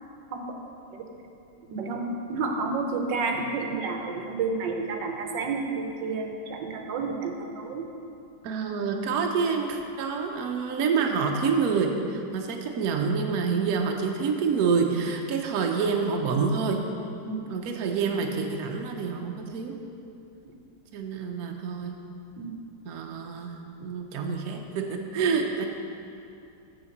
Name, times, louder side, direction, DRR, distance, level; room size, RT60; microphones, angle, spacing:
voice 1, 1.6-2.0 2.3-7.8 17.3-17.4 20.4-20.5 22.4-22.5, right 4 dB, 90° right, 3 dB, 1.5 m, -30 dB
voice 2, 8.4-16.8 17.5-19.8 20.9-22.0 22.8-25.7, right 5 dB, 60° right, 2 dB, 1.2 m, -27 dB
6.9 x 6.6 x 7.1 m, 2.6 s
omnidirectional pair, 1.9 m